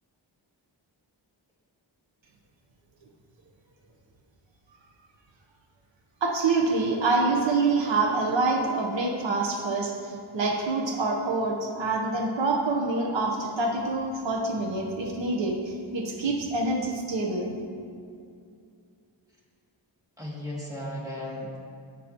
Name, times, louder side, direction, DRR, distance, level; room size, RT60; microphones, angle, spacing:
voice 1, 6.2-17.5, right 3 dB, 70° right, 0 dB, 1.1 m, -26 dB
voice 2, 20.2-21.6, left 1 dB, 10° right, -6 dB, 2.4 m, -35 dB
17.0 x 6.0 x 3.0 m, 2.4 s
wide cardioid pair, 75°, 46 cm